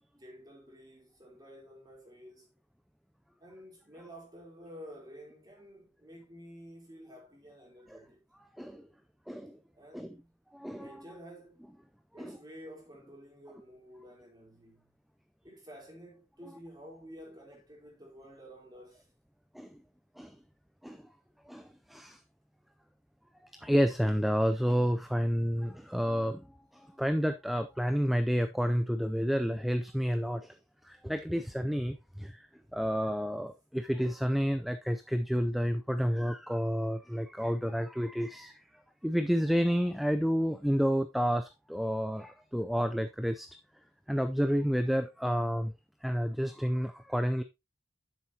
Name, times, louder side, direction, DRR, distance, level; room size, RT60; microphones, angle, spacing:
voice 1, 0.1-2.5 3.4-8.2 9.8-10.4 10.7-11.6 12.1-14.9 15.4-19.1, equal, 20° right, 3.5 m, -51 dB
voice 2, 8.6-8.9 9.3-9.6 9.9-10.1 10.6-11.0 12.2-12.4 19.5-19.8 20.2-20.4 20.8-21.1 21.5-22.2 23.5-30.6 30.8-43.5 44.1-45.7 46.0-47.4, equal, ahead, 0.4 m, -30 dB
10.0 x 7.3 x 2.8 m
head